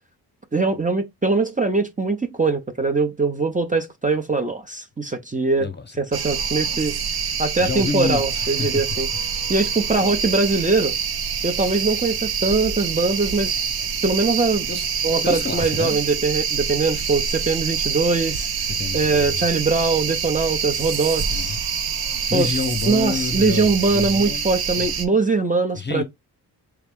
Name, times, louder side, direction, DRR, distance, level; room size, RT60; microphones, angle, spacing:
voice 1, 0.5-5.7 6.0-7.0 7.4-9.1 9.5-10.9 11.4-13.6 14.0-14.7 15.0-18.5 18.9-21.6 22.3-22.5 22.9-26.0, right 3 dB, 20° right, 0.7 m, -22 dB
voice 2, 5.6-5.9 7.6-8.7 9.6-9.7 10.0-10.2 14.7-14.9 15.2-16.0 18.8-19.6 21.3-21.6 22.3-24.9 25.8-26.0, left 5 dB, 25° left, 0.9 m, -28 dB
sound 1, 6.1-25.0, right 6 dB, 65° right, 0.8 m, -26 dB
3.5 x 3.2 x 3.6 m
cardioid pair, 70°, 40 cm